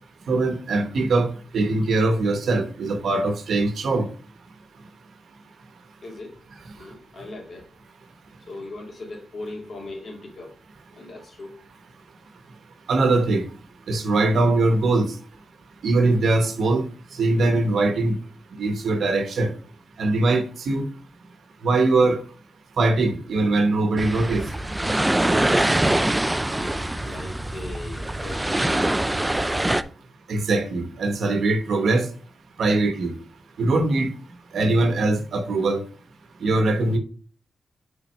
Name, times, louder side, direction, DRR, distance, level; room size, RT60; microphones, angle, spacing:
voice 1, 0.3-1.3 1.5-4.1 12.9-13.5 13.9-15.1 15.8-16.8 17.2-18.2 18.5-19.5 20.0-20.9 21.6-22.2 22.8-24.5 30.3-32.1 32.6-33.1 33.6-34.1 34.5-35.8 36.4-37.0, right 2 dB, 80° right, 1.0 m, -21 dB
voice 2, 6.0-6.4 6.8-7.7 8.4-10.5 10.9-11.5 26.5-29.7, left 2 dB, 50° left, 2.0 m, -39 dB
sound 1, 24.0-29.8, right 1 dB, 10° right, 0.3 m, -23 dB
6.0 x 3.9 x 5.5 m
wide cardioid pair, 135°, 0 cm